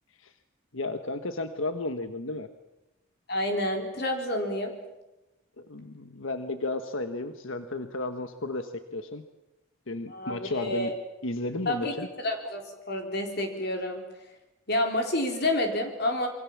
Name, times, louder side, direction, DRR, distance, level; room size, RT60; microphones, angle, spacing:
voice 1, 0.7-2.5 5.7-9.2 9.9-10.9 11.2-12.1, left 2 dB, 70° left, 8 dB, 1.4 m, -33 dB
voice 2, 3.3-4.7 10.1-10.9 11.7-11.9 12.2-12.6 12.9-14.0 14.7-16.3, left 1 dB, 50° left, 3 dB, 4.1 m, -29 dB
27.5 x 24.5 x 7.3 m, 0.98 s
head